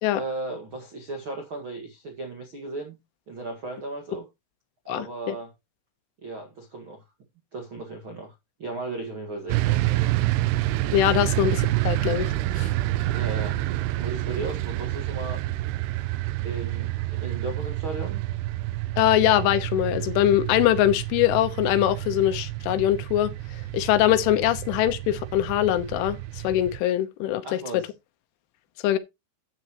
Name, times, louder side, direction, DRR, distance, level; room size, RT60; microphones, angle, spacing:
voice 1, 0.1-3.0 3.3-4.3 4.9-5.5 6.2-7.0 7.5-8.3 8.6-10.1 12.9-13.6 14.0-15.4 16.4-18.2 27.4-27.9, right 2 dB, 55° right, 1.4 m, -36 dB
voice 2, 4.9-5.4 10.9-12.7 19.0-23.3 23.7-26.2 26.4-27.4 27.7-27.8 28.8-29.0, left 13 dB, 85° left, 3.5 m, -22 dB
sound 1, 9.5-26.8, right 16 dB, 85° right, 2.3 m, -28 dB
13.0 x 8.5 x 3.0 m
omnidirectional pair, 5.5 m